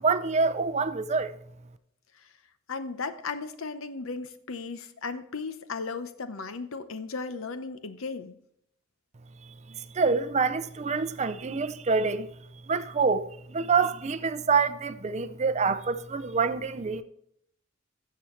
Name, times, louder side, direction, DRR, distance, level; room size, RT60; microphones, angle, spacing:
voice 1, 0.0-1.3 9.9-12.3 12.7-13.2 13.5-17.0, right 4 dB, 35° right, 0.5 m, -26 dB
voice 2, 2.7-8.3, left 4 dB, 80° left, 0.8 m, -36 dB
13.5 x 7.0 x 3.1 m
head